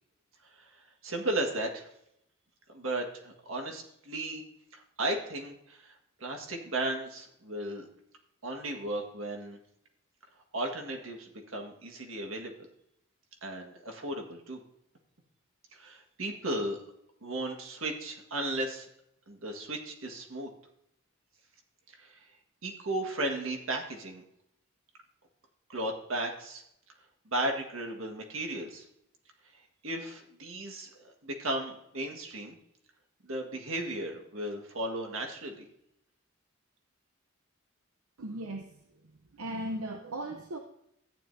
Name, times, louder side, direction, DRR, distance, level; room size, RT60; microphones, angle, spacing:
voice 1, 0.4-1.9 2.7-4.4 4.7-7.9 8.4-9.6 10.5-12.5 13.4-14.6 15.7-16.8 17.2-18.9 19.3-20.5 21.9-22.3 22.6-24.2 25.7-26.6 27.2-28.9 29.5-32.6 33.2-35.7, right 1 dB, 70° right, 3 dB, 1.7 m, -35 dB
voice 2, 38.2-38.9 39.3-40.6, right 1 dB, 90° right, 4 dB, 0.8 m, -37 dB
14.0 x 9.6 x 2.7 m, 0.77 s
head